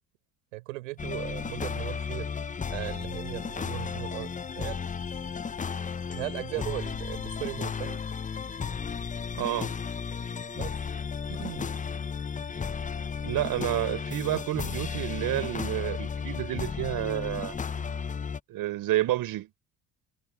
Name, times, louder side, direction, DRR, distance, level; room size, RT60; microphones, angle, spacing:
voice 1, 0.5-2.3 2.7-4.8 6.1-8.0 10.5-10.7 11.3-11.7, right 21 dB, 85° right, 5.1 m, -37 dB
sound 1, 1.0-18.4, left 6 dB, 20° left, 0.7 m, -34 dB
voice 2, 9.4-9.7 13.2-17.6 18.5-19.5, right 15 dB, 65° right, 4.1 m, -30 dB
hypercardioid pair, 65°, 38 cm